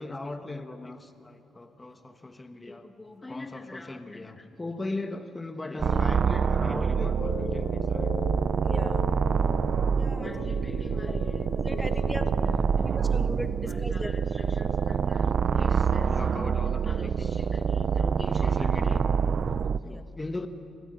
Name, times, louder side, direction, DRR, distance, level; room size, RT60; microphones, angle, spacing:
voice 1, 0.0-8.2 10.2-11.5 11.8-13.2 13.7-19.0 19.4-20.5, left 2 dB, 20° left, 7 dB, 1.4 m, -39 dB
sound 1, 5.8-19.8, right 6 dB, 50° right, 0.5 m, -26 dB
sound 2, 6.9-12.8, left 7 dB, 55° left, 1.5 m, -40 dB
voice 2, 8.6-9.0 9.9-10.5 11.1-11.2 11.5-12.3 12.9-14.1 14.5-14.6 19.9-20.0, equal, ahead, 9 dB, 1.4 m, -38 dB
26.0 x 16.0 x 9.4 m, 2.7 s
cardioid pair, 90°, 0 cm